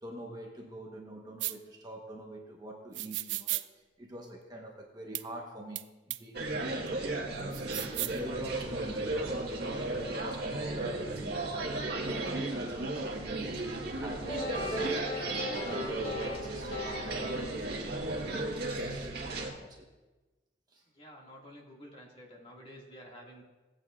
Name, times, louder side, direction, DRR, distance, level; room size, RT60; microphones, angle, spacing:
voice 1, 0.0-3.6 4.0-6.8 7.1-7.6 8.0-9.8 10.1-15.9 16.2-18.3 18.7-19.1 19.6-19.9 20.7-20.8, right 1 dB, 25° right, 0 dB, 1.1 m, -45 dB
sound 1, 1.4-1.6 2.9-3.6 5.1-5.2 5.8-5.9 6.1-6.2 7.5-8.2, right 17 dB, 85° right, 0.4 m, -34 dB
sound 2, 6.3-19.5, right 2 dB, 60° right, 1.7 m, -35 dB
sound 3, 14.3-18.1, left 2 dB, 60° left, 3.1 m, -38 dB
voice 2, 20.9-23.4, equal, 30° left, -2 dB, 2.1 m, -50 dB
16.5 x 8.8 x 2.5 m, 1.2 s
head